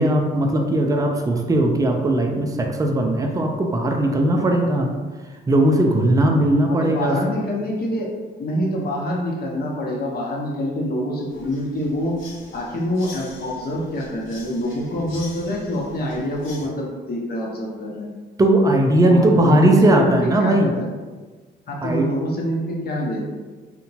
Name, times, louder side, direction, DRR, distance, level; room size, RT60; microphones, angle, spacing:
voice 1, 0.0-4.9 5.5-7.2 18.4-20.7 21.8-22.1, right 1 dB, 15° right, 2 dB, 0.4 m, -18 dB
voice 2, 6.7-8.1 8.4-12.2 12.5-18.1 19.0-20.9 21.7-23.2, left 1 dB, 50° left, -2 dB, 0.7 m, -26 dB
sound 1, 11.3-16.7, left 3 dB, 80° left, 0.8 m, -43 dB
2.8 x 2.1 x 2.7 m, 1.4 s
cardioid pair, 90°, 20 cm